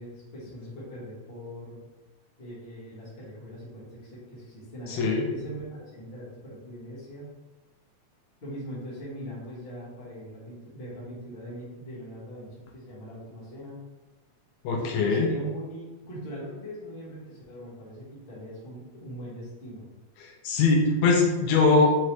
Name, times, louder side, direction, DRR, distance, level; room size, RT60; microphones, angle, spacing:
voice 1, 0.0-1.8 2.4-7.3 8.4-13.8 14.7-19.8, equal, 40° left, -7 dB, 0.8 m, -41 dB
voice 2, 4.9-5.3 14.6-15.3 20.2-22.0, left 3 dB, 80° left, 0 dB, 1.8 m, -22 dB
4.9 x 3.2 x 2.9 m, 1.1 s
omnidirectional pair, 3.4 m